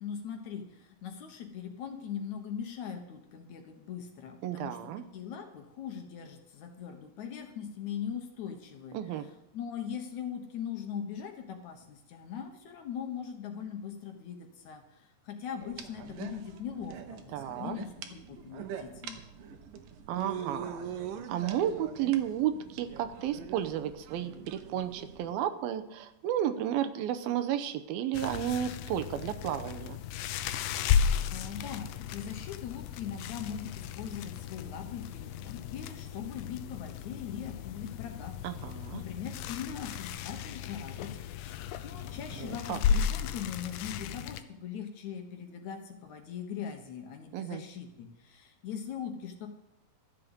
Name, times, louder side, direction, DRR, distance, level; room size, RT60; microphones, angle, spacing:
voice 1, 0.0-9.0 9.5-19.2 30.8-38.4 38.9-49.5, left 8 dB, 65° left, 5 dB, 2.2 m, -41 dB
voice 2, 4.4-5.0 8.9-9.3 17.3-17.8 20.1-21.0 21.3-30.0 38.4-39.0 42.3-42.8 47.3-47.6, right 10 dB, 90° right, 9 dB, 2.7 m, -32 dB
sound 1, 15.6-25.3, right 8 dB, 75° right, 2.6 m, -43 dB
sound 2, 28.1-44.4, left 8 dB, 85° left, 2.6 m, -34 dB
13.0 x 7.6 x 8.1 m, 0.90 s
omnidirectional pair, 4.2 m